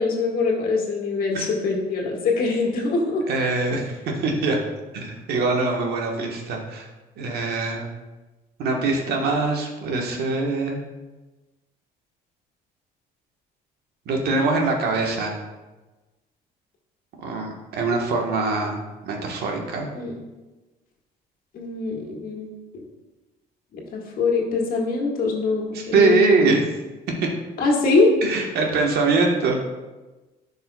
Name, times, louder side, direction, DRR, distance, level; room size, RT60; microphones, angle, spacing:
voice 1, 0.0-3.2 19.9-20.2 21.5-22.5 23.7-26.5 27.6-28.2, left 3 dB, 60° left, -1 dB, 1.7 m, -23 dB
voice 2, 3.3-4.6 4.9-6.9 7.2-7.9 8.6-10.8 14.1-15.3 17.2-19.9 25.7-26.6 27.2-27.3 28.2-29.6, right 3 dB, 70° right, 1 dB, 1.3 m, -23 dB
10.5 x 5.5 x 2.3 m, 1.2 s
cardioid pair, 110°, 17 cm